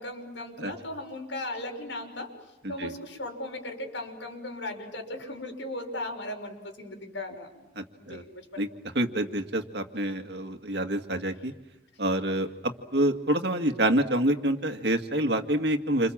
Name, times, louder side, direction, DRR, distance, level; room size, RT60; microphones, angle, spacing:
voice 1, 0.0-2.3 2.7-7.7 8.1-8.6, left 1 dB, 85° left, 3 dB, 6.2 m, -37 dB
voice 2, 7.8-8.2 8.6-8.7 8.9-11.5 12.0-16.1, right 1 dB, 60° right, 6 dB, 2.0 m, -27 dB
29.0 x 27.5 x 7.5 m, 0.96 s
head